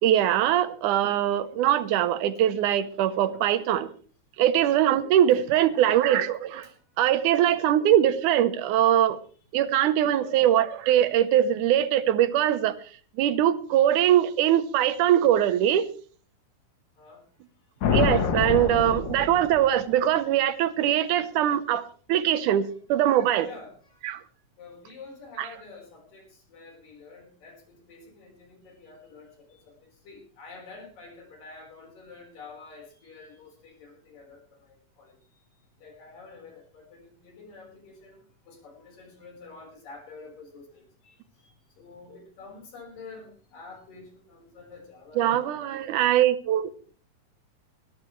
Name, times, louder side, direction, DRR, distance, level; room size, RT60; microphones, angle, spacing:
voice 1, 0.0-3.9 4.4-6.7 7.0-9.2 9.5-12.8 13.2-15.9 17.8-23.5 24.0-24.2 25.4-25.5 45.2-46.7, right 11 dB, 75° right, 11 dB, 2.4 m, -22 dB
voice 2, 5.5-6.1 6.6-6.8 10.1-10.3 17.0-17.2 23.4-24.0 24.6-35.2 35.8-41.2 41.4-41.5 41.8-45.7 46.1-46.2, left 4 dB, 85° left, 2 dB, 6.3 m, -48 dB
sound 1, 17.8-19.9, left 6 dB, 60° left, 1.2 m, -26 dB
21.0 x 14.0 x 3.3 m, 0.41 s
omnidirectional pair, 3.8 m